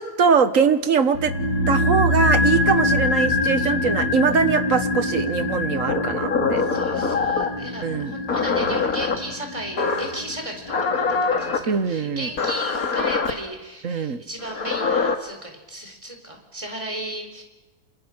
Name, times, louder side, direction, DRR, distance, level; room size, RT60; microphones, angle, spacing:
voice 1, 0.0-1.3 1.7-6.6 7.8-8.1 11.7-12.3 13.8-14.2, right 6 dB, 55° right, 11 dB, 1.5 m, -22 dB
sound 1, 1.1-11.4 11.7-11.8, left 2 dB, 80° left, 2.0 m, -24 dB
Glitch Elements, 5.9-7.6 8.3-9.2 9.8-10.2 10.7-11.6 12.4-13.3 14.4-15.1, left 4 dB, 60° left, 2.4 m, -23 dB
voice 2, 6.5-17.4, right 1 dB, 20° right, 4 dB, 4.3 m, -35 dB
27.5 x 27.5 x 6.1 m, 1.1 s
omnidirectional pair, 1.7 m